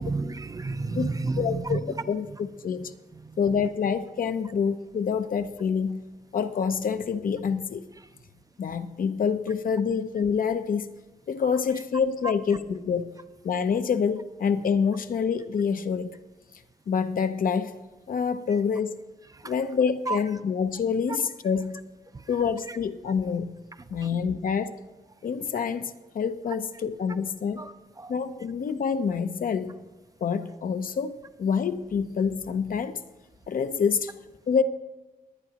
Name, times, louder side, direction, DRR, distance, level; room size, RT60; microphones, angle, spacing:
voice 1, 0.0-2.0 3.1-3.4 19.3-19.5 20.1-20.2 22.1-22.2 22.7-22.8 27.6-28.1, right 3 dB, 25° right, 0.4 m, -31 dB
voice 2, 1.4-1.8 2.1-2.3 2.6-2.9 3.4-6.0 6.3-7.9 8.6-10.9 11.3-13.1 13.4-16.2 16.9-17.8 18.1-18.9 19.4-21.8 22.3-23.5 23.9-24.7 25.2-27.6 28.1-29.8 30.2-31.1 31.4-33.0 33.5-34.1 34.5-34.6, left 6 dB, 65° left, 0.6 m, -27 dB
21.5 x 9.1 x 2.9 m
wide cardioid pair, 120°, 15 cm